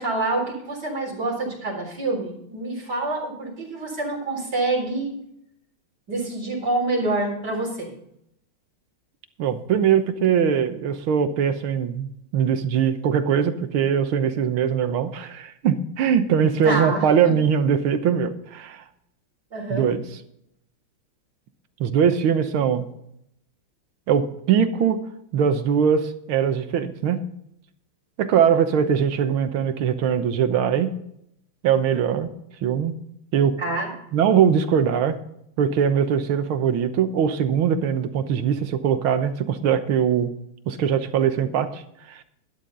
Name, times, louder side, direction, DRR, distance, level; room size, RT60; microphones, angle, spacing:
voice 1, 0.0-5.1 6.1-7.9 16.6-17.3 19.5-19.9 33.6-33.9, right 2 dB, 55° right, -1 dB, 4.5 m, -27 dB
voice 2, 9.4-18.8 19.7-20.0 21.8-22.9 24.1-25.0 25.3-27.2 28.2-30.9 31.6-32.3 32.6-32.9 33.3-33.6 34.1-35.2 35.6-40.3 40.7-41.8 42.1-42.2, right 8 dB, 85° right, 10 dB, 1.9 m, -21 dB
12.5 x 11.0 x 3.9 m, 0.75 s
omnidirectional pair, 2.2 m